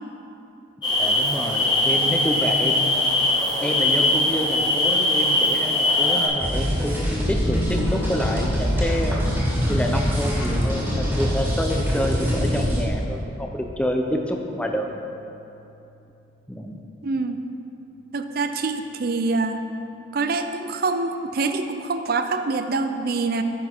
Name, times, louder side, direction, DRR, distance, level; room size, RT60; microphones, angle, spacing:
sound 1, 0.8-6.3, left 2 dB, 25° left, 2.2 m, -21 dB
voice 1, 1.0-2.9 3.6-9.2 9.7-15.0 16.5-16.8, equal, 5° left, 2 dB, 0.6 m, -28 dB
sound 2, 6.4-12.8, equal, 10° right, 1.9 m, -24 dB
sound 3, 7.4-16.5 18.0-18.5, left 1 dB, 75° left, 0.9 m, -38 dB
voice 2, 17.0-17.4 18.1-19.6 20.1-23.4, right 3 dB, 50° right, 8 dB, 0.5 m, -25 dB
10.5 x 6.1 x 4.5 m, 2.8 s
head